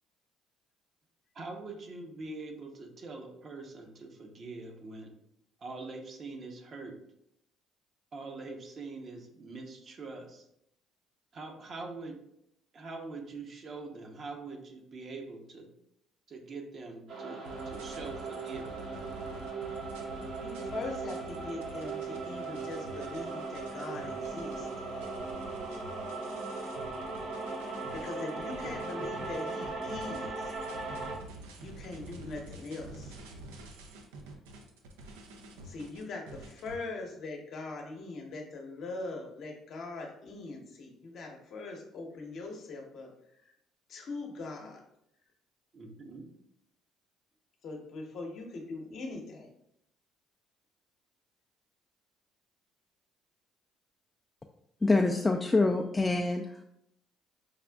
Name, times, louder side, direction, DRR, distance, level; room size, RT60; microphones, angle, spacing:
voice 1, 1.3-5.1 5.6-6.9 8.1-10.5 11.3-12.2 12.7-15.7 16.3-18.9 28.6-28.8 45.7-46.3, right 3 dB, 50° right, 2 dB, 0.7 m, -43 dB
sound 1, 17.1-31.2, right 3 dB, 70° right, 1.1 m, -38 dB
sound 2, 17.4-36.8, right 2 dB, 90° right, 0.4 m, -48 dB
voice 2, 20.3-24.7 27.9-30.5 31.6-33.2 35.6-43.1 43.9-44.8 47.6-49.5, left 3 dB, 65° left, 1 dB, 0.8 m, -41 dB
voice 3, 54.8-56.6, left 3 dB, 20° left, 3 dB, 0.3 m, -26 dB
5.0 x 2.4 x 2.3 m, 0.77 s
supercardioid pair, 65°, 0 cm